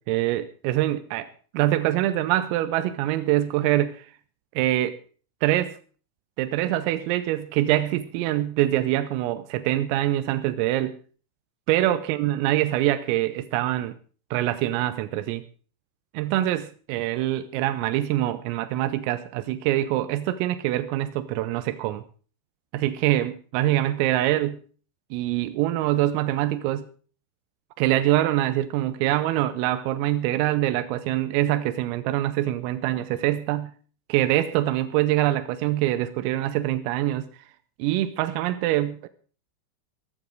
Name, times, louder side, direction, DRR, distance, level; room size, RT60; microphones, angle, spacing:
voice 1, 0.0-4.1 4.6-5.0 5.4-5.8 6.4-11.0 11.7-13.9 14.3-15.4 16.2-22.0 22.7-24.6 25.1-26.9 27.8-33.7 34.1-37.3 37.8-39.1, right 14 dB, 90° right, 3.5 m, -24 dB
14.5 x 14.0 x 4.6 m
omnidirectional pair, 5.9 m